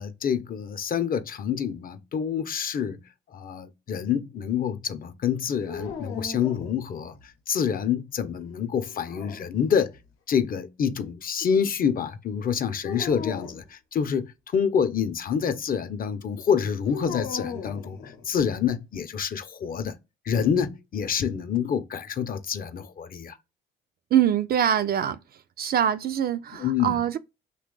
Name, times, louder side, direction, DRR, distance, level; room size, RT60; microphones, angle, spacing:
voice 1, 0.0-3.0 3.3-7.2 7.5-9.9 10.3-20.0 20.3-23.4 26.6-27.0, left 7 dB, 45° left, 0.5 m, -27 dB
sound 1, 5.7-7.2 8.9-10.0 12.8-13.6 16.9-18.5, left 6 dB, 85° left, 0.8 m, -38 dB
voice 2, 24.1-25.2 25.6-27.2, right 9 dB, 50° right, 0.4 m, -23 dB
2.8 x 2.2 x 3.7 m
cardioid pair, 90°, 20 cm